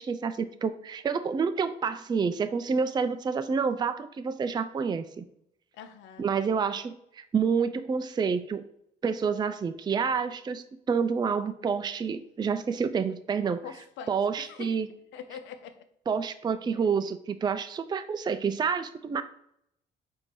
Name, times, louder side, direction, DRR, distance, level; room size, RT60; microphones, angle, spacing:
voice 1, 0.0-5.2 6.2-8.6 9.0-13.6 14.1-14.9 16.1-19.2, right 6 dB, 20° right, 0.3 m, -28 dB
voice 2, 5.7-6.2 13.6-14.8 15.1-15.8, left 7 dB, 80° left, 0.5 m, -44 dB
4.4 x 2.7 x 4.4 m
supercardioid pair, 55°, 19 cm